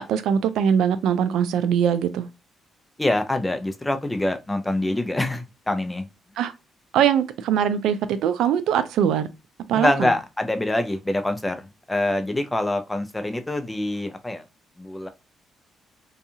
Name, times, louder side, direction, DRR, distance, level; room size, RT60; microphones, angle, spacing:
voice 1, 0.0-2.3 6.4-6.5 6.9-9.3 9.7-10.1, right 8 dB, 85° right, 0.3 m, -22 dB
voice 2, 3.0-6.1 9.7-14.4 14.8-15.1, left 1 dB, 10° left, 0.4 m, -25 dB
2.7 x 2.3 x 2.6 m
cardioid pair, 90°, 0 cm